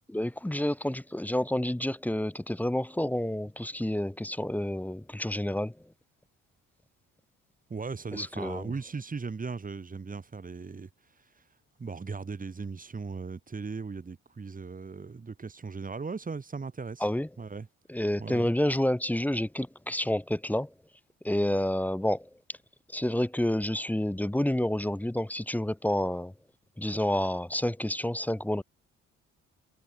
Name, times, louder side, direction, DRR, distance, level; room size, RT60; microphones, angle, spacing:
voice 1, 0.1-5.7 8.1-8.7 17.0-17.3 17.9-20.7 21.2-22.2 22.9-26.3 26.8-28.6, left 1 dB, 5° left, 1.2 m, -29 dB
voice 2, 7.7-10.9 11.8-17.1 17.4-17.7 18.2-18.5, right 4 dB, 25° right, 2.3 m, -38 dB
cardioid pair, 90°, 30 cm